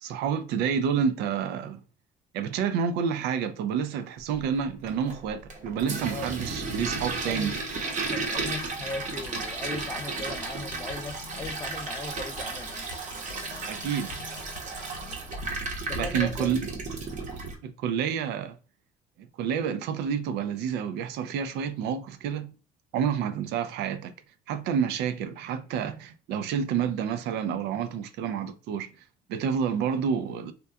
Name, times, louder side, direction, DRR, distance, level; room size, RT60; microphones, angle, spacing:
voice 1, 0.0-1.8 2.3-7.5 13.7-14.1 15.9-16.7 17.6-18.6 19.2-22.5 22.9-24.1 24.5-28.9 29.3-30.5, right 7 dB, 80° right, 0.4 m, -29 dB
Toilet flush, 4.8-17.6, right 3 dB, 45° right, 0.7 m, -34 dB
voice 2, 7.2-7.5 8.0-12.8 15.9-16.6 22.9-23.0, left 3 dB, 20° left, 0.3 m, -38 dB
sound 1, 8.3-16.2, left 4 dB, 75° left, 0.9 m, -45 dB
2.8 x 2.2 x 2.2 m
cardioid pair, 110°, 17 cm